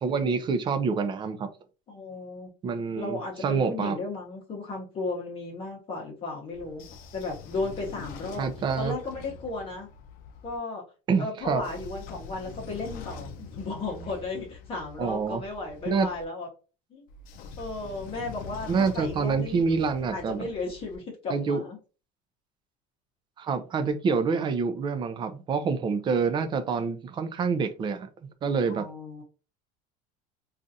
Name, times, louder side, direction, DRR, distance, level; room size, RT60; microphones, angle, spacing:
voice 1, 0.0-1.5 2.6-4.0 8.4-8.9 11.1-11.6 15.0-15.4 15.9-16.1 18.7-20.4 21.3-21.6 23.4-28.1 28.4-28.9, right 5 dB, 25° right, 10 dB, 0.5 m, -27 dB
voice 2, 1.9-2.5 2.9-6.8 7.1-8.5 8.8-9.9 10.4-10.8 11.2-16.5 16.9-17.0 17.6-19.6 20.1-21.8 28.7-29.2, left 3 dB, 30° left, -1 dB, 0.9 m, -35 dB
Train / Sliding door, 6.5-10.6 11.4-16.2 17.1-21.0, left 5 dB, 55° left, 0.5 m, -44 dB
3.8 x 2.4 x 2.6 m, 0.34 s
cardioid pair, 135°, 17 cm